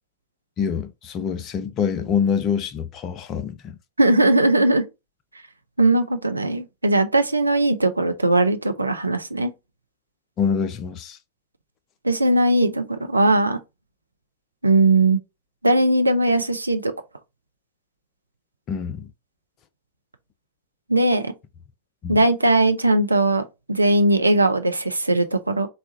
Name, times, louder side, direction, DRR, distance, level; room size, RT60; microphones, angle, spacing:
voice 1, 0.6-3.8 10.4-11.2 18.7-19.1 22.0-22.2, left 7 dB, 35° left, 0.5 m, -25 dB
voice 2, 4.0-4.9 5.8-9.5 12.0-13.6 14.6-15.2 15.6-16.9 20.9-21.3 22.1-23.4 23.7-25.7, right 2 dB, 80° right, 0.4 m, -19 dB
4.0 x 2.3 x 2.7 m
figure-of-eight pair, 90°, 0 cm